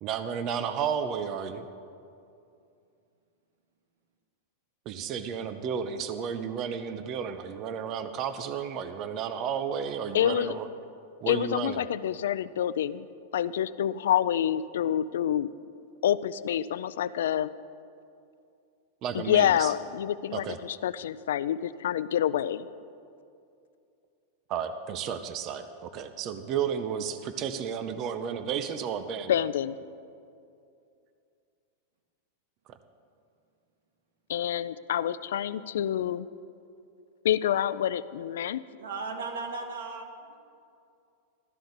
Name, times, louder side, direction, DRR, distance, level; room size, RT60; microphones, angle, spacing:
voice 1, 0.0-1.7 4.9-10.7 11.2-11.8 19.0-19.7 20.3-20.6 24.5-29.3 32.7-32.8, right 7 dB, 30° right, 9 dB, 0.5 m, -32 dB
voice 2, 10.1-10.5 11.3-13.1 13.3-15.5 16.0-17.5 19.1-22.7 29.3-29.8 34.3-36.3 37.2-38.6, left 10 dB, 85° left, 16 dB, 0.4 m, -27 dB
voice 3, 38.8-40.3, right 4 dB, 85° right, 2 dB, 1.9 m, -36 dB
13.0 x 12.5 x 3.9 m, 2.5 s
supercardioid pair, 160°, 0 cm